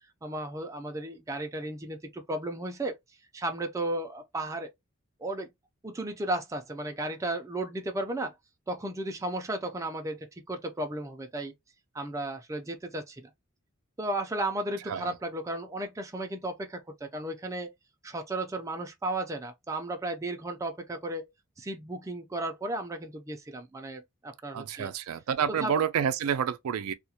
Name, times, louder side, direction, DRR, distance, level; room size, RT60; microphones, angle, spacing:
voice 1, 0.2-2.9 3.3-4.7 5.2-5.5 5.8-8.3 8.7-11.5 11.9-13.3 14.0-17.7 18.0-21.2 21.6-24.9 25.5-25.7, right 1 dB, 15° right, 0.4 m, -34 dB
voice 2, 24.5-26.9, right 8 dB, 90° right, 0.4 m, -29 dB
2.3 x 2.1 x 2.7 m
head